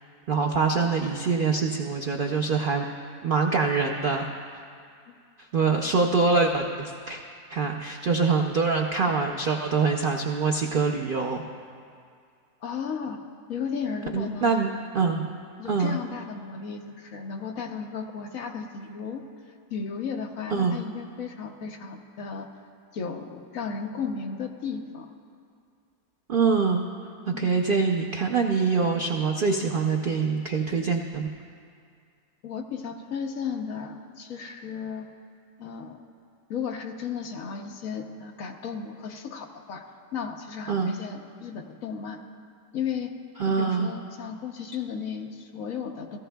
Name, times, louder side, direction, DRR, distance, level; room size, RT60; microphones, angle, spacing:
voice 1, 0.3-2.8 3.2-4.3 5.5-7.2 7.5-11.4 14.1-14.7 14.9-15.2 15.7-16.0 20.5-20.8 26.3-26.8 27.3-31.3 40.7-40.9 43.4-43.9, right 4 dB, 85° right, 2 dB, 0.4 m, -24 dB
voice 2, 12.6-13.2 13.5-14.6 15.6-19.3 19.7-22.5 22.9-25.1 27.3-27.5 32.4-35.1 35.6-36.0 36.5-39.8 40.1-42.2 42.7-43.1 43.4-46.2, left 6 dB, 60° left, 3 dB, 1.1 m, -34 dB
17.5 x 14.5 x 2.3 m, 2.2 s
omnidirectional pair, 1.7 m